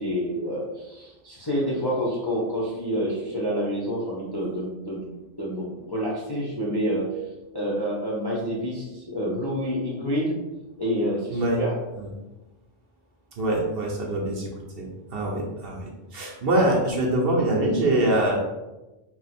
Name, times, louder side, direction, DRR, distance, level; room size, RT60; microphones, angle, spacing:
voice 1, 0.0-5.1 5.4-7.1 7.5-10.3 10.8-11.8, equal, 35° left, -6 dB, 0.4 m, -28 dB
voice 2, 11.3-11.6 12.0-12.1 13.4-18.4, right 1 dB, 60° right, -2 dB, 0.7 m, -24 dB
2.9 x 2.1 x 4.1 m, 1.1 s
omnidirectional pair, 1.3 m